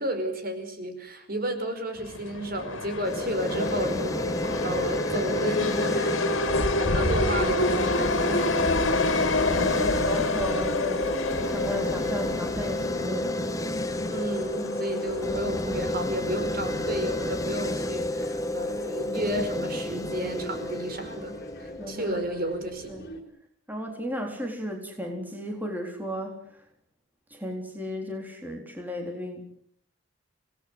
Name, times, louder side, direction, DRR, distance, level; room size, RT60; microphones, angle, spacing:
voice 1, 0.0-6.2 6.8-8.6 14.1-22.9, right 1 dB, 50° right, 7 dB, 5.1 m, -32 dB
sound 1, 2.0-17.9, left 2 dB, 85° left, 2.6 m, -29 dB
sound 2, 3.0-22.1, left 1 dB, 15° left, 1.2 m, -31 dB
voice 2, 9.7-11.1 11.5-13.4 21.8-22.2 22.9-23.0 23.7-26.7 27.3-29.4, equal, 10° right, 2 dB, 3.9 m, -35 dB
sound 3, 15.0-23.2, left 1 dB, 50° left, 4.8 m, -46 dB
26.5 x 19.0 x 8.0 m, 0.66 s
head